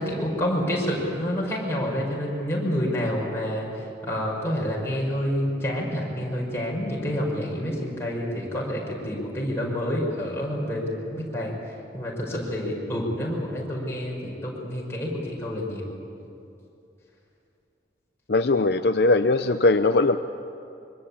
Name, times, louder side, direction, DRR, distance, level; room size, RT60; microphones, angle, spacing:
voice 1, 0.0-11.5 11.9-15.9, equal, 15° left, -4 dB, 5.5 m, -28 dB
voice 2, 18.3-20.2, left 2 dB, 65° left, 8 dB, 0.7 m, -20 dB
25.5 x 23.5 x 8.7 m, 2.7 s
head